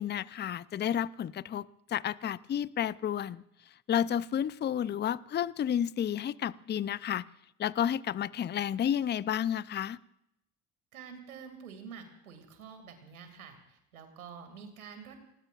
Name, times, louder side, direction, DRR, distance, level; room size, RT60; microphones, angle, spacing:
voice 1, 0.0-3.4 3.9-7.3 7.6-10.0, left 9 dB, 25° left, 20 dB, 0.5 m, -31 dB
voice 2, 10.9-15.2, right 6 dB, 85° right, 6 dB, 2.5 m, -48 dB
28.5 x 18.5 x 2.5 m, 0.83 s
hypercardioid pair, 60°, 42 cm